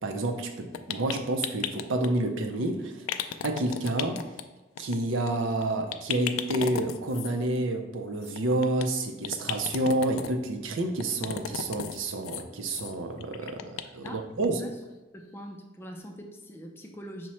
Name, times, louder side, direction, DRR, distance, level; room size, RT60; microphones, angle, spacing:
voice 1, 0.0-3.1 3.4-4.2 4.8-13.6 13.9-14.6, right 2 dB, 70° right, 5 dB, 0.5 m, -29 dB
sound 1, 0.7-2.1 3.1-4.4 4.7-5.0 5.2-5.3 5.6-5.7 5.9-7.3 8.2-8.8 9.2-10.3 11.0-12.0 12.2-12.4 12.7-12.9 13.2-14.1 14.4-14.5 14.9-15.0, left 9 dB, 85° left, 0.3 m, -34 dB
voice 2, 15.1-17.3, equal, 10° left, 2 dB, 0.4 m, -43 dB
6.0 x 2.1 x 4.2 m, 1.1 s
head